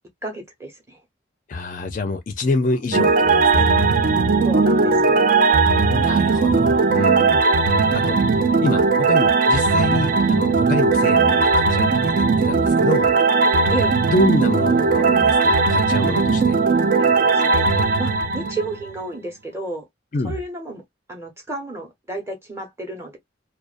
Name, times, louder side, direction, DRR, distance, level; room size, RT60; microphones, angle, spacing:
voice 1, 0.2-1.0 4.4-5.4 13.7-14.0 17.0-19.9 20.2-20.8 21.1-23.2, right 2 dB, 15° right, 0.9 m, -32 dB
voice 2, 1.5-3.7 5.8-7.4 7.9-8.2 8.6-12.1 12.4-13.1 14.1-16.4 20.1-20.3, left 2 dB, 40° left, 0.4 m, -26 dB
sound 1, 2.9-19.0, right 4 dB, 45° right, 0.4 m, -18 dB
2.4 x 2.3 x 2.4 m
head